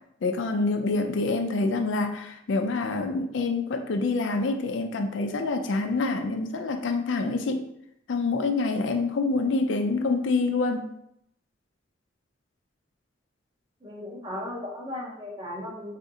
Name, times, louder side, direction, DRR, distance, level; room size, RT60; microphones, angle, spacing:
voice 1, 0.2-7.7 8.1-10.9, left 3 dB, 75° left, 5 dB, 0.4 m, -26 dB
voice 2, 13.8-16.0, left 1 dB, 25° right, -2 dB, 0.7 m, -36 dB
3.7 x 2.5 x 2.6 m, 0.75 s
head